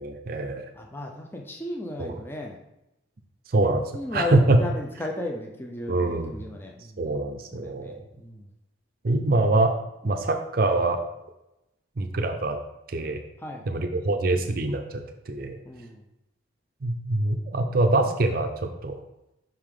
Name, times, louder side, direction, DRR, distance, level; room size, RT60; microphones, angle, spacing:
voice 1, 0.0-0.6 2.0-2.2 3.5-3.8 4.1-4.6 5.9-6.4 7.0-8.0 9.0-9.7 10.0-11.0 12.0-12.6 12.9-13.2 13.7-15.6 16.8-18.5 18.8-19.0, right 2 dB, 45° right, 5 dB, 0.5 m, -24 dB
voice 2, 0.7-2.6 3.9-7.1 7.5-8.4 10.0-10.2 13.4-13.6 15.6-16.0, left 1 dB, 10° left, 1 dB, 0.5 m, -35 dB
5.7 x 5.0 x 3.6 m, 0.89 s
head